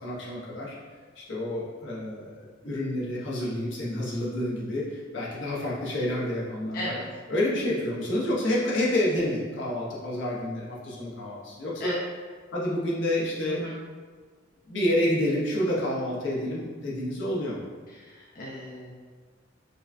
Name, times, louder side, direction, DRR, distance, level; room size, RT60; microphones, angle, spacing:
voice 1, 0.0-0.8 1.2-6.9 7.3-12.0 12.5-13.7 14.7-17.6, left 1 dB, 75° left, -6 dB, 0.9 m, -29 dB
voice 2, 17.9-18.9, equal, 50° left, -6 dB, 0.5 m, -36 dB
5.1 x 2.2 x 2.5 m, 1.5 s
head